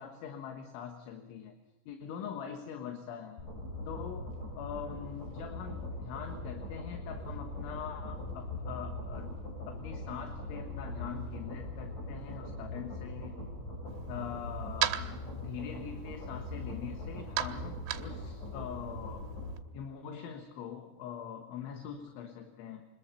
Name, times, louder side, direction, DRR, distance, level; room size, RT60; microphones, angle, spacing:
voice 1, 0.0-1.6 1.9-3.4 3.9-4.3 4.6-9.4 9.7-13.4 14.1-19.2 19.7-22.9, left 8 dB, 70° left, 5 dB, 3.6 m, -43 dB
sound 1, 3.4-19.5, left 2 dB, 40° left, 7.5 m, -41 dB
sound 2, 4.3-15.0, right 5 dB, 55° right, 3.5 m, -54 dB
sound 3, 13.9-19.6, right 13 dB, 90° right, 3.8 m, -39 dB
25.5 x 21.0 x 5.7 m, 1.1 s
omnidirectional pair, 6.0 m